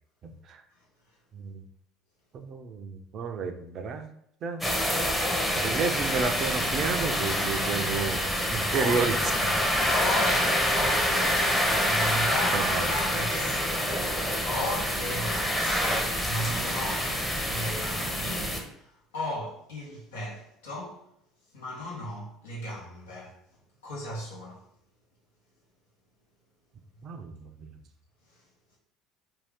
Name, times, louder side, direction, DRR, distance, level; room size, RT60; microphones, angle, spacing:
voice 1, 0.2-0.6 1.3-1.6 2.3-4.1 4.4-4.6 5.5-8.2 8.5-9.2 12.5-13.3 27.0-27.8, right 5 dB, 50° right, 0.4 m, -31 dB
sound 1, 4.6-18.6, equal, 10° left, 0.7 m, -27 dB
voice 2, 8.7-9.2 9.9-14.1 14.5-17.2 17.4-21.0 21.5-23.4 23.8-24.6 28.3-28.4, left 1 dB, 90° left, 1.0 m, -36 dB
2.7 x 2.3 x 3.4 m
hypercardioid pair, 75°, 0 cm